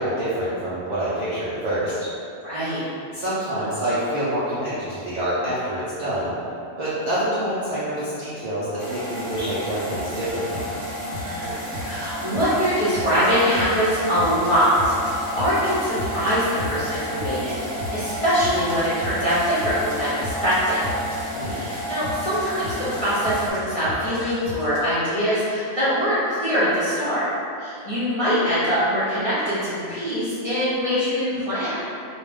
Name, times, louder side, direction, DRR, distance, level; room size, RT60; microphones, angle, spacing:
voice 1, 0.0-2.1 3.1-6.3 6.8-10.6 21.3-21.6, right 1 dB, 70° right, -10 dB, 0.4 m, -26 dB
voice 2, 2.4-2.8 11.1-20.8 21.5-27.3 27.6-31.8, equal, 45° left, -13 dB, 0.4 m, -23 dB
sound 1, 8.8-23.5, equal, 15° left, 0.9 m, -32 dB
sound 2, 9.3-24.8, left 1 dB, 85° right, 1.0 m, -36 dB
2.3 x 2.2 x 3.3 m, 2.5 s
omnidirectional pair, 1.4 m